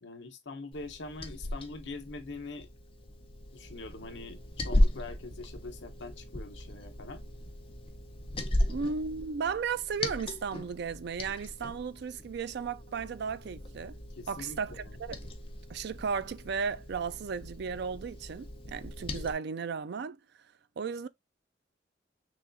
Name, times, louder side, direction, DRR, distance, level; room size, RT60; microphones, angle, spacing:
voice 1, 0.0-2.7 3.5-7.2 14.2-14.9, left 3 dB, 75° left, 0.9 m, -43 dB
Liquid, 0.7-19.3, left 1 dB, 30° left, 0.6 m, -36 dB
voice 2, 8.7-14.0 14.3-15.3 15.7-20.2 20.8-21.1, right 6 dB, 65° right, 0.4 m, -35 dB
6.1 x 2.4 x 2.5 m
head